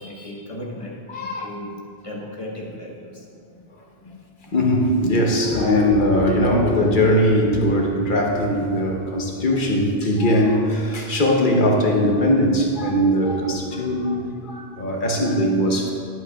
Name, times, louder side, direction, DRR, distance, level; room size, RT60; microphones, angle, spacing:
voice 1, 0.0-3.3 3.5-3.7 4.0-4.6, left 1 dB, 35° left, -2 dB, 1.2 m, -36 dB
voice 2, 1.1-1.5 4.5-15.9, equal, 55° left, 0 dB, 1.1 m, -20 dB
11.0 x 8.4 x 2.4 m, 2.2 s
omnidirectional pair, 1.1 m